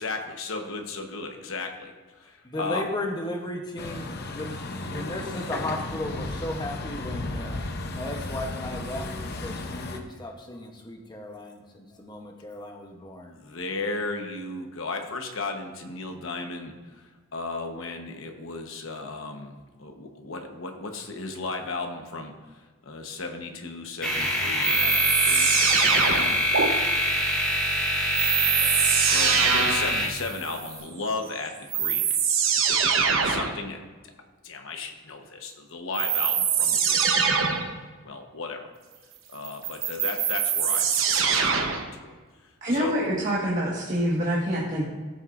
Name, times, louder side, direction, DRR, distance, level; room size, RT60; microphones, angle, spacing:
voice 1, 0.0-1.9 2.2-2.8 13.4-16.7 17.3-22.4 22.9-26.5 28.1-28.3 28.6-32.2 32.7-33.8 34.4-37.4 38.0-38.7 39.3-42.1 42.7-43.0, left 3 dB, 70° left, 4 dB, 1.1 m, -35 dB
voice 2, 2.5-4.5 4.9-7.6 7.9-13.4, left 1 dB, 20° left, 2 dB, 0.9 m, -35 dB
Truck, 3.8-10.0, left 2 dB, 50° left, 0.7 m, -34 dB
sound 1, 24.0-30.8, left 1 dB, 5° left, 2.6 m, -25 dB
sound 2, 24.6-26.7 28.1-30.0 31.2-31.3 31.7-33.6 35.9-37.7 39.4-41.9, right 7 dB, 70° right, 0.9 m, -23 dB
voice 3, 42.6-44.8, equal, 40° right, -6 dB, 1.5 m, -26 dB
14.0 x 6.7 x 2.5 m, 1.4 s
head